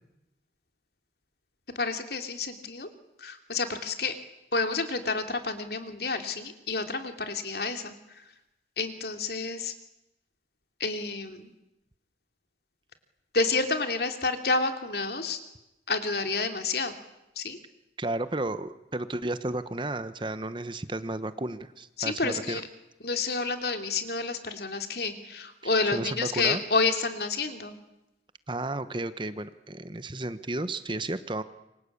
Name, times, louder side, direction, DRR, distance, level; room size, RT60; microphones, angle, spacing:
voice 1, 1.7-2.9 3.2-4.1 4.5-8.2 8.8-9.7 10.8-11.5 13.3-15.4 15.9-16.9 17.3-17.6 22.0-22.7 23.0-27.8, left 3 dB, 65° left, 6 dB, 2.9 m, -29 dB
voice 2, 18.0-22.6 25.9-26.6 28.5-31.4, right 2 dB, 25° right, 12 dB, 1.1 m, -33 dB
28.0 x 25.0 x 8.6 m, 0.92 s
head